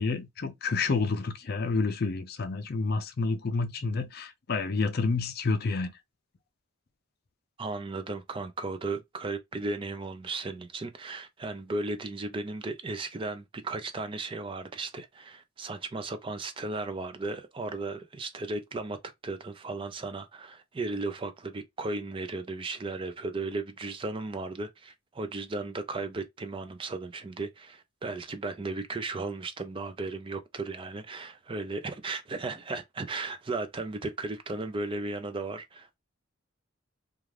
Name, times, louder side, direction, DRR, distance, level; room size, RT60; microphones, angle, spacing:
voice 1, 0.0-5.9, left 4 dB, 50° left, 0.4 m, -29 dB
voice 2, 7.6-19.0 19.2-36.0, right 3 dB, 25° right, 0.4 m, -35 dB
2.4 x 2.3 x 3.2 m
head